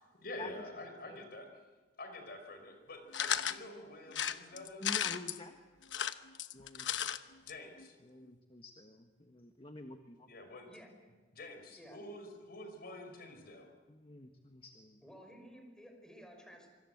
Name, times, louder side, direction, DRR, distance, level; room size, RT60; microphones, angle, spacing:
voice 1, 0.2-1.5 2.0-4.9 7.4-7.9 10.3-10.7 11.3-13.7, left 1 dB, 60° left, 6 dB, 5.3 m, -48 dB
sound 1, 3.1-3.6 4.1-5.4 5.8-7.2 7.5-7.6 7.8-7.9, left 9 dB, 85° left, 1.0 m, -35 dB
voice 2, 4.8-5.6 6.5-7.4 8.0-10.3 11.7-12.0 13.9-15.0, left 2 dB, 30° left, 6 dB, 1.5 m, -49 dB
voice 3, 15.0-16.7, equal, 5° left, 4 dB, 5.4 m, -54 dB
26.0 x 25.0 x 8.1 m, 1.3 s
head